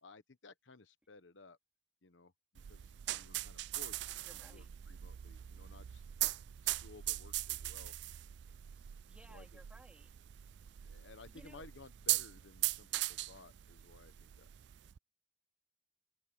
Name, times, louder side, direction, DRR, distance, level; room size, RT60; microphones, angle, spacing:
voice 1, 0.0-1.6 2.0-6.0 6.6-7.9 9.3-9.6 10.8-14.5, left 3 dB, 75° left, 1.1 m, -58 dB
sound 1, 2.6-15.0, right 16 dB, 60° right, 0.3 m, -40 dB
voice 2, 4.2-4.7 8.7-10.1 11.3-11.7, right 1 dB, 5° right, 3.7 m, -60 dB
head